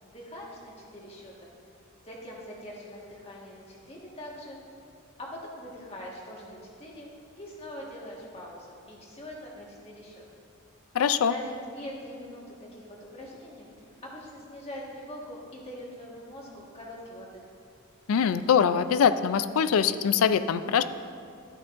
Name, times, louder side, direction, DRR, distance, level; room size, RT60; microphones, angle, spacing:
voice 1, 0.0-1.5 2.0-4.6 5.2-7.1 7.4-10.2 11.2-17.5, equal, 30° left, -3 dB, 1.5 m, -43 dB
voice 2, 10.9-11.3 18.1-20.8, left 7 dB, 80° left, 12 dB, 0.4 m, -23 dB
13.0 x 8.9 x 2.5 m, 2.4 s
head